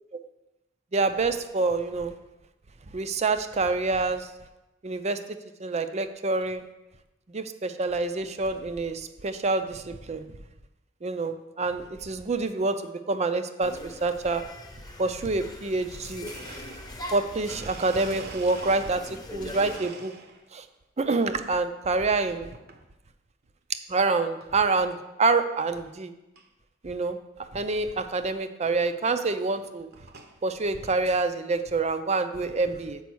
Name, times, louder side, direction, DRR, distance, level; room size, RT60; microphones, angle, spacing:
voice 1, 0.9-2.1 2.9-4.3 4.8-5.2 5.6-6.7 7.3-10.2 11.0-14.4 15.0-16.3 17.1-20.1 20.5-20.6 21.0-22.5 23.9-26.1 26.8-27.2 27.5-29.9 30.4-33.0, right 3 dB, 35° right, 10 dB, 0.5 m, -27 dB
sound 1, 13.6-19.8, left 1 dB, 20° left, 1.0 m, -41 dB
Domestic sounds home sounds, 16.3-19.2 19.5-20.6 21.0-21.5 22.5-22.8 23.4-23.5 24.4-24.5 24.8-25.1 25.5-25.6 25.8-25.9 26.4-26.5 27.8-27.9 28.7-28.8 29.5-30.4, right 4 dB, 55° right, 0.9 m, -45 dB
6.9 x 5.3 x 6.2 m, 0.98 s
head